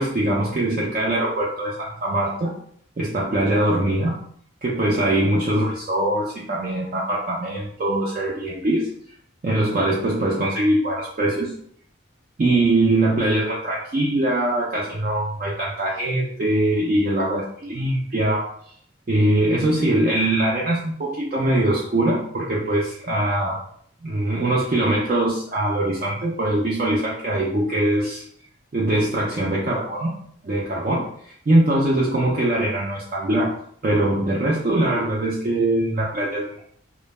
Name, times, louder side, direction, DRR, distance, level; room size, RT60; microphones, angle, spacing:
voice 1, 0.0-2.5 3.0-4.2 4.6-8.9 9.4-11.5 12.4-18.5 19.1-23.6 24.0-28.2 28.7-30.1 30.4-33.5 33.8-36.6, right 1 dB, 40° right, -5 dB, 0.4 m, -22 dB
2.1 x 2.0 x 3.1 m, 0.63 s
head